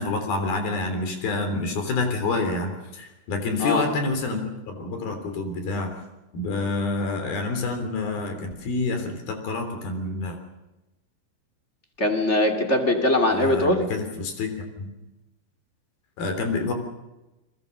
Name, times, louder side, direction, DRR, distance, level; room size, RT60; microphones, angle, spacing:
voice 1, 0.0-5.9 6.3-10.4 13.3-14.9 16.2-16.7, left 3 dB, 60° left, 6 dB, 5.0 m, -28 dB
voice 2, 12.0-13.8, left 1 dB, 20° left, 4 dB, 2.1 m, -21 dB
29.0 x 22.0 x 6.6 m, 1.0 s
omnidirectional pair, 5.1 m